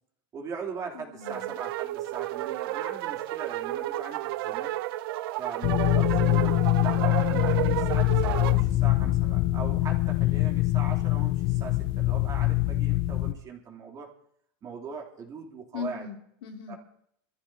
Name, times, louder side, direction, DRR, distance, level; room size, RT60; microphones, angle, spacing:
voice 1, 0.3-4.7 5.4-14.1 14.6-16.1 16.7-16.8, right 5 dB, 30° right, -1 dB, 3.2 m, -40 dB
voice 2, 0.9-1.5 15.7-16.7, left 7 dB, 85° left, 3 dB, 2.4 m, -39 dB
sound 1, 1.2-8.6, right 16 dB, 75° right, 0.6 m, -31 dB
sound 2, 5.6-13.3, left 18 dB, 50° left, 0.6 m, -24 dB
26.5 x 14.5 x 2.9 m, 0.69 s
supercardioid pair, 145°, 12 cm